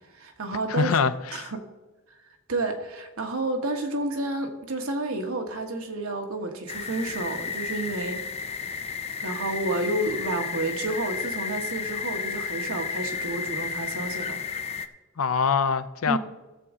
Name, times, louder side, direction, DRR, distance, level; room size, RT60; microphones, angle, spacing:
voice 1, 0.1-0.9 1.3-1.6 2.5-8.2 9.2-14.4 16.1-16.2, right 2 dB, 85° right, 1.3 m, -30 dB
voice 2, 0.7-1.5 15.2-16.2, left 6 dB, 80° left, 0.5 m, -24 dB
sound 1, 6.7-14.9, left 5 dB, 30° left, 0.4 m, -32 dB
15.0 x 7.3 x 3.7 m
head